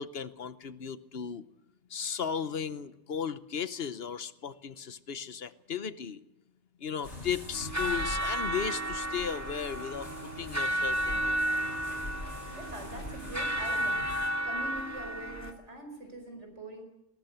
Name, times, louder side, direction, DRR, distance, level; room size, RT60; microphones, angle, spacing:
voice 1, 0.0-1.4 1.9-6.2 6.8-10.1 10.4-11.4, left 7 dB, 60° left, 14 dB, 1.1 m, -36 dB
sound 1, 7.0-14.3, left 1 dB, 75° left, 7.0 m, -44 dB
sound 2, 7.5-15.5, right 1 dB, 15° right, 2.2 m, -33 dB
voice 2, 12.5-14.1 14.4-16.8, right 1 dB, 80° right, 5 dB, 5.2 m, -43 dB
20.0 x 19.0 x 8.0 m, 0.90 s
omnidirectional pair, 1.2 m